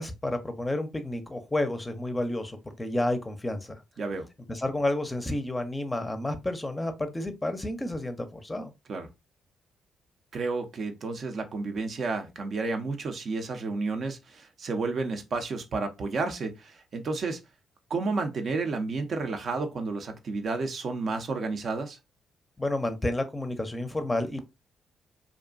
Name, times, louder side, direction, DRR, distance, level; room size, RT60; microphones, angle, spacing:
voice 1, 0.0-3.8 4.5-8.7 22.6-24.5, left 1 dB, 20° left, 0.5 m, -30 dB
voice 2, 10.3-17.4 17.9-22.0, right 3 dB, 55° right, 0.5 m, -31 dB
2.5 x 2.2 x 2.4 m
hypercardioid pair, 45°, 0 cm